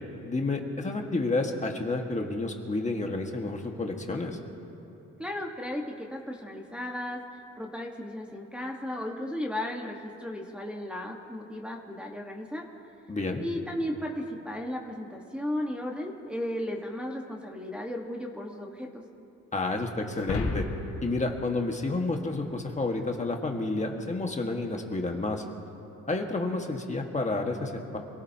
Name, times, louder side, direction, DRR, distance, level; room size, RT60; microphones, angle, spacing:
voice 1, 0.2-4.4 13.1-13.4 19.5-20.6 21.0-25.4 26.1-28.0, left 2 dB, 25° left, 2 dB, 1.6 m, -30 dB
voice 2, 5.2-12.6 13.4-19.0, left 1 dB, 5° right, -1 dB, 1.4 m, -35 dB
sound 1, 20.1-22.7, left 3 dB, 65° left, 2.6 m, -34 dB
26.5 x 17.5 x 2.9 m, 2.9 s
cardioid pair, 90°, 30 cm